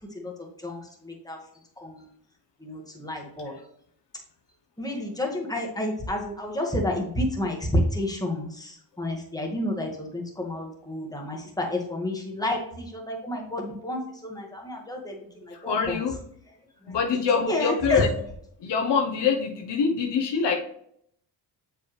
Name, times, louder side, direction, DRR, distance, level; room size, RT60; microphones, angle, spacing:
voice 1, 0.1-1.4 1.8-2.1 2.6-3.5 4.8-16.2 16.8-18.0, left 1 dB, 10° left, 0 dB, 1.8 m, -30 dB
voice 2, 15.7-16.1 16.9-18.1 18.6-20.5, left 6 dB, 70° left, 2 dB, 1.1 m, -24 dB
6.9 x 5.1 x 3.3 m, 0.69 s
cardioid pair, 90°, 44 cm